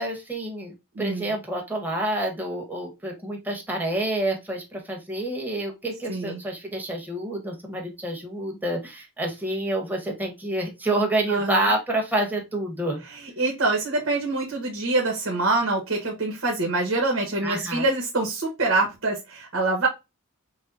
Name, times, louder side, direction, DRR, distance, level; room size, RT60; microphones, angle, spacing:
voice 1, 0.0-13.0 17.4-17.8, right 1 dB, 10° right, 0 dB, 1.3 m, -28 dB
voice 2, 0.9-1.3 6.1-6.4 11.3-11.7 13.4-19.9, right 2 dB, 70° right, 0 dB, 1.3 m, -25 dB
6.3 x 2.2 x 2.6 m, 0.23 s
head